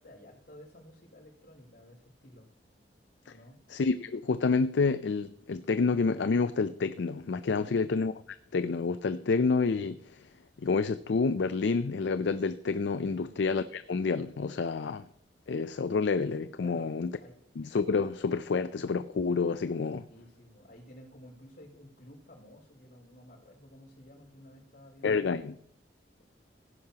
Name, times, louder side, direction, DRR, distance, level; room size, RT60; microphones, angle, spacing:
voice 1, 0.0-2.5 3.2-3.6 7.4-7.9 13.1-13.4 16.6-17.4 20.1-25.5, left 1 dB, 55° left, 5.4 m, -53 dB
voice 2, 3.7-8.1 8.5-10.2 10.6-15.0 15.5-17.1 17.6-20.0 25.0-25.5, left 4 dB, 75° left, 0.4 m, -28 dB
16.5 x 10.5 x 2.9 m
head